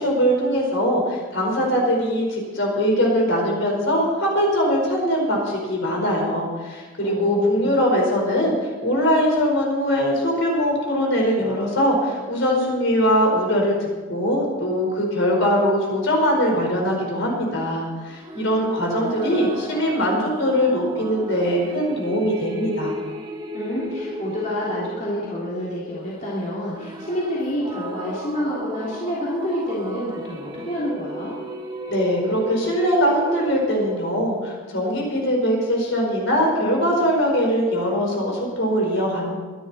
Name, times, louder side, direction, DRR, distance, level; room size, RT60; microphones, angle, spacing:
voice 1, 0.0-8.6 8.8-22.9 31.9-39.4, equal, 60° left, -1 dB, 4.9 m, -21 dB
voice 2, 7.0-7.8 23.5-31.4, equal, 35° left, -7 dB, 3.2 m, -28 dB
sound 1, 18.1-34.1, equal, 20° right, 1.1 m, -35 dB
23.5 x 11.0 x 4.3 m, 1.3 s
head